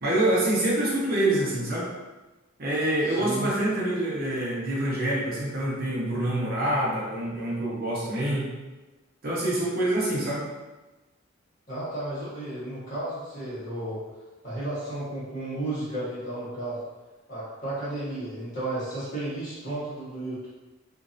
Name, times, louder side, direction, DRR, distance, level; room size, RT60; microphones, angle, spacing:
voice 1, 0.0-1.9 2.6-8.5 9.2-10.4, right 1 dB, 50° right, -6 dB, 0.8 m, -26 dB
voice 2, 3.0-3.5 11.7-14.0 14.4-16.8 17.3-20.5, right 1 dB, 40° left, -10 dB, 1.5 m, -33 dB
3.0 x 2.6 x 2.6 m, 1.1 s
head